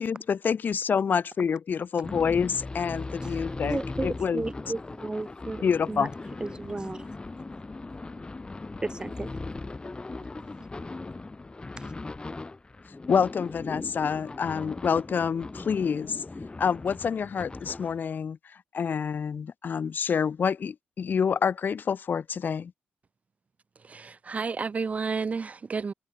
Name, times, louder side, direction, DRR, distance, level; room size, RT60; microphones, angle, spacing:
voice 1, 0.0-4.4 5.6-6.1 13.1-16.2 16.6-18.4 18.7-22.7, left 6 dB, 55° left, 1.0 m, -27 dB
sound 1, 2.0-18.1, left 3 dB, 25° left, 2.4 m, -39 dB
voice 2, 3.2-6.1 6.4-7.0 8.8-9.3 11.8-11.9, right 2 dB, 20° right, 2.1 m, -34 dB
voice 3, 23.8-25.9, right 5 dB, 40° right, 0.4 m, -31 dB
cardioid pair, 85°, 4 cm